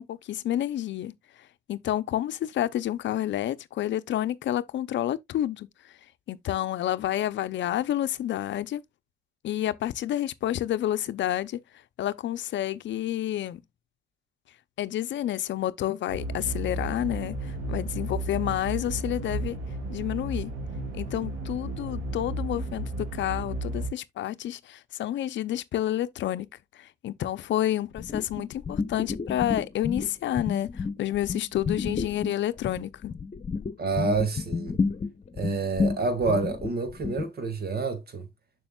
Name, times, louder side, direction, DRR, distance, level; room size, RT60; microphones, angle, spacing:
voice 1, 0.0-6.0 6.3-8.8 9.4-11.6 12.0-13.6 14.8-19.6 19.9-20.5 20.9-26.5 26.7-33.1, left 12 dB, 70° left, 0.6 m, -29 dB
sound 1, 16.1-23.9, right 1 dB, 80° right, 2.7 m, -33 dB
sound 2, 28.0-30.1 30.3-37.2, left 4 dB, 35° left, 1.1 m, -31 dB
voice 2, 33.8-34.8 35.3-38.3, right 4 dB, 50° right, 2.1 m, -28 dB
7.0 x 6.2 x 2.3 m
cardioid pair, 90°, 20 cm